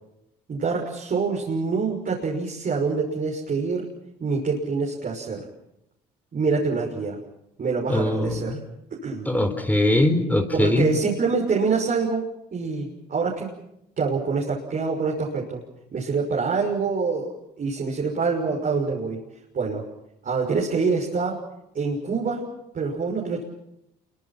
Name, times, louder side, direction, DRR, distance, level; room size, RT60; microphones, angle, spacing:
voice 1, 0.5-3.9 4.2-5.5 6.3-7.2 7.6-8.6 9.0-9.2 10.6-12.2 12.5-13.6 14.0-15.6 15.9-19.2 19.5-19.8 20.2-21.4 21.7-22.5 22.7-23.4, right 4 dB, 45° right, -2 dB, 6.1 m, -25 dB
voice 2, 7.9-8.6 9.3-10.9, left 1 dB, 10° left, 7 dB, 4.3 m, -21 dB
28.0 x 24.5 x 6.0 m, 0.82 s
supercardioid pair, 65°, 19 cm